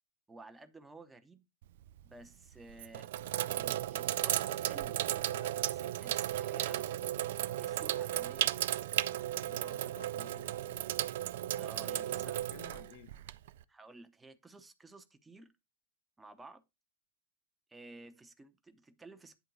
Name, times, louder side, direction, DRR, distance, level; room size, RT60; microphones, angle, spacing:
voice 1, 0.3-1.5 2.0-3.1 3.4-6.9 7.5-8.7 11.6-12.4 13.7-15.5 16.2-16.6 17.7-19.4, right 3 dB, 10° right, 0.9 m, -54 dB
Sink (filling or washing), 1.6-2.1 2.7-13.6, right 13 dB, 55° right, 0.3 m, -35 dB
voice 2, 9.4-11.0 11.8-13.2, left 9 dB, 50° left, 0.7 m, -55 dB
9.4 x 3.8 x 4.0 m
figure-of-eight pair, 90°, 0 cm